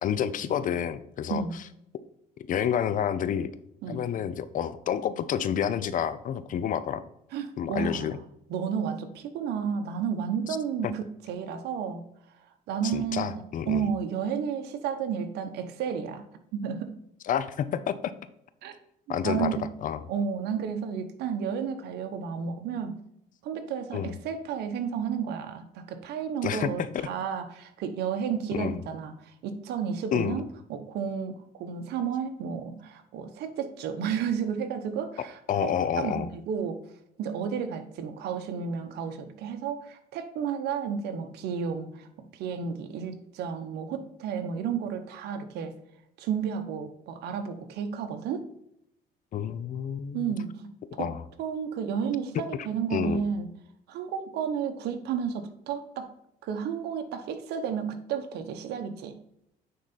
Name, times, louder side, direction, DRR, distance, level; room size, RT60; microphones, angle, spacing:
voice 1, 0.0-1.4 2.5-3.5 3.9-7.0 7.6-8.2 12.9-13.9 17.2-18.1 19.1-20.1 23.9-24.1 26.4-26.9 28.5-28.8 30.1-30.4 35.5-36.3 49.3-50.3 51.0-51.2 52.9-53.2, left 9 dB, 50° left, 14 dB, 0.7 m, -29 dB
voice 2, 7.3-8.2 8.5-12.0 12.7-16.2 16.5-16.9 18.6-18.8 19.1-19.7 20.1-23.0 23.4-36.8 37.2-42.1 42.3-45.7 46.2-48.5 50.1-51.1 51.4-53.5 53.9-56.1 56.4-59.2, right 7 dB, 75° right, 6 dB, 1.0 m, -32 dB
9.4 x 3.8 x 4.2 m, 0.76 s
cardioid pair, 110°, 17 cm